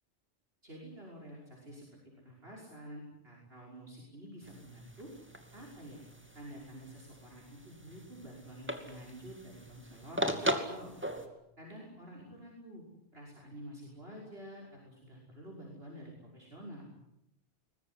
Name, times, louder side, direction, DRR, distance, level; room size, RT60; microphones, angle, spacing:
voice 1, 0.6-1.9 2.2-5.1 5.5-6.0 6.3-10.9 11.6-12.8 13.1-16.9, right 1 dB, 55° right, -2 dB, 6.2 m, -49 dB
sound 1, 4.4-11.3, equal, 10° right, 2.5 m, -39 dB
22.5 x 21.0 x 9.9 m, 0.81 s
omnidirectional pair, 1.2 m